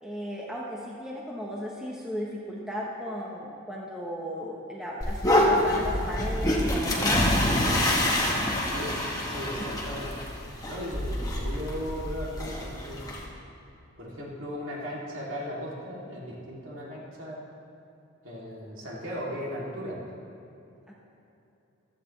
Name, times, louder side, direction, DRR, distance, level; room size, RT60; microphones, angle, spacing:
voice 1, 0.0-7.5 20.9-21.0, equal, 5° right, -4 dB, 1.0 m, -36 dB
sound 1, 5.0-13.3, left 1 dB, 15° left, 1.4 m, -26 dB
voice 2, 8.6-9.0 9.2-10.3 10.7-13.1 14.0-17.4 18.2-20.0, equal, 65° right, -5 dB, 3.0 m, -37 dB
15.0 x 12.0 x 3.3 m, 2.9 s
head